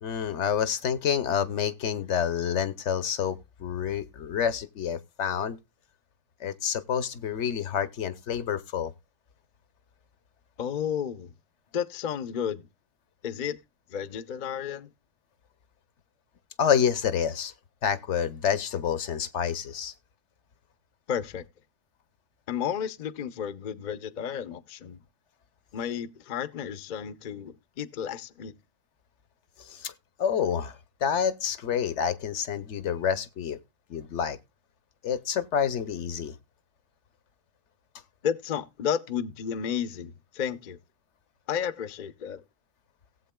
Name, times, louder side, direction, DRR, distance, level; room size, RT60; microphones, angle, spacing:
voice 1, 0.0-5.6 6.4-8.9 16.6-17.5 17.8-19.9 29.7-29.9 30.2-30.8 31.0-33.6 33.9-34.4 35.0-36.3, left 8 dB, 65° left, 1.0 m, -28 dB
voice 2, 10.6-11.3 11.7-12.7 13.2-13.6 13.9-14.9 21.1-21.4 22.5-25.0 25.7-28.5 38.2-40.8 41.5-42.4, left 8 dB, 50° left, 0.6 m, -32 dB
17.5 x 7.8 x 2.2 m
omnidirectional pair, 1.4 m